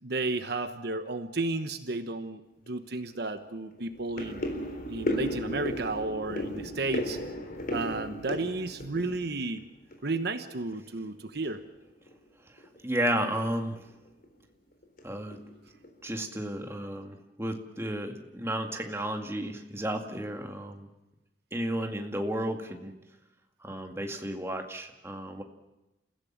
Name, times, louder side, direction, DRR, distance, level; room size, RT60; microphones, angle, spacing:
voice 1, 0.0-4.4 4.9-7.2 7.7-9.6 10.0-11.6, right 2 dB, 60° right, 9 dB, 1.1 m, -33 dB
sound 1, 2.7-2.8 3.1-3.3 3.7-10.2 10.5-11.1 11.5-11.7 12.0-12.1 12.6-12.8 13.1-13.3 13.8-14.2 14.8-15.0 15.3-16.0 16.3-16.4, left 1 dB, 50° left, 3.8 m, -35 dB
voice 2, 12.8-13.8 15.0-15.4 16.0-20.9 21.5-22.9 23.6-25.4, right 1 dB, 15° right, 3 dB, 2.1 m, -33 dB
29.0 x 15.5 x 7.4 m, 0.98 s
head